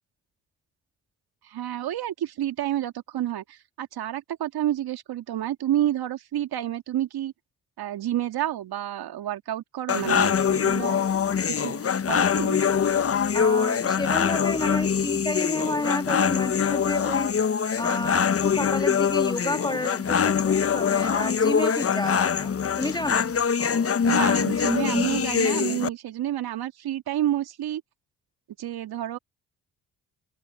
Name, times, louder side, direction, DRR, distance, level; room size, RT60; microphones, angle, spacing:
voice 1, 1.4-7.3 7.8-11.1 11.5-11.8 12.1-12.6 21.5-21.8 23.7-27.8 28.6-29.2, right 12 dB, 65° right, 2.4 m, -29 dB
sound 1, 9.9-25.9, left 7 dB, 35° left, 1.1 m, -23 dB
voice 2, 13.3-17.3 17.8-23.4, left 1 dB, 10° left, 3.0 m, -31 dB
open air
hypercardioid pair, 45°, 40 cm